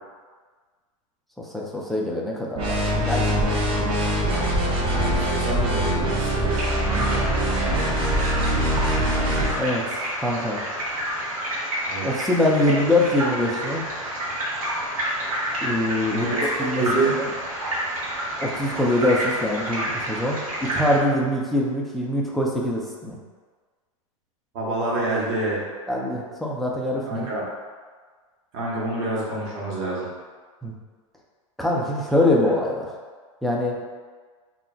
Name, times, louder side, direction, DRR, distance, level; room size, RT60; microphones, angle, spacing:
voice 1, 1.4-3.7 6.9-7.6 9.6-9.8 10.2-10.6 12.0-13.9 15.6-16.9 17.1-17.3 18.4-23.2 25.9-27.3 30.6-30.7 31.6-32.9 33.4-33.8, left 1 dB, ahead, -3 dB, 0.3 m, -24 dB
sound 1, 2.6-9.6, equal, 30° right, 0.7 m, -23 dB
voice 2, 4.9-6.6 11.9-12.0 16.1-17.1 24.5-25.6 27.0-27.4 28.5-30.1, right 2 dB, 50° right, -6 dB, 1.1 m, -27 dB
sound 2, 6.5-21.0, right 1 dB, 90° right, 1.1 m, -29 dB
2.4 x 2.1 x 3.8 m, 1.5 s
hypercardioid pair, 125°, 18 cm